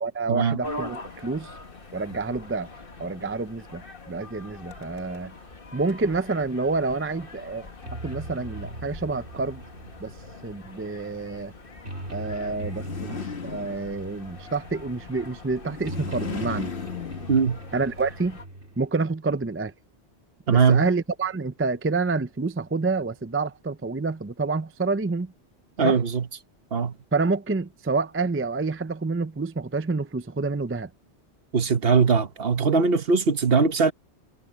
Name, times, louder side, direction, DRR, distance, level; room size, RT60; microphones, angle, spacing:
voice 1, 0.0-1.5 1.9-2.7 3.0-5.3 5.7-7.7 8.0-9.6 10.0-10.1 10.4-11.5 12.1-16.7 17.7-18.4 18.8-19.7 20.5-25.3 25.8-26.0 27.1-30.9, right 3 dB, 20° right, 0.4 m, -28 dB
sound 1, 0.6-18.5, left 2 dB, 50° left, 2.0 m, -43 dB
sound 2, 7.3-18.9, right 1 dB, 80° right, 3.3 m, -40 dB
sound 3, 12.5-14.3 15.6-17.8, left 7 dB, 70° left, 1.7 m, -36 dB
voice 2, 17.3-17.6 20.5-20.8 25.8-26.2 26.7-26.9 31.5-33.9, right 5 dB, 60° right, 1.3 m, -20 dB
omnidirectional pair, 1.1 m